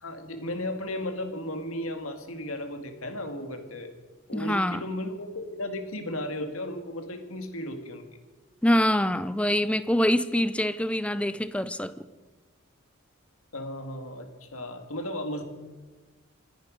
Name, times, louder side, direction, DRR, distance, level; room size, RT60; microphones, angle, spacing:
voice 1, 0.0-3.9 4.3-8.2 13.5-15.4, left 1 dB, 80° left, 2.1 m, -35 dB
voice 2, 4.3-4.8 8.6-11.9, left 1 dB, 5° left, 0.5 m, -25 dB
26.0 x 10.0 x 5.3 m
head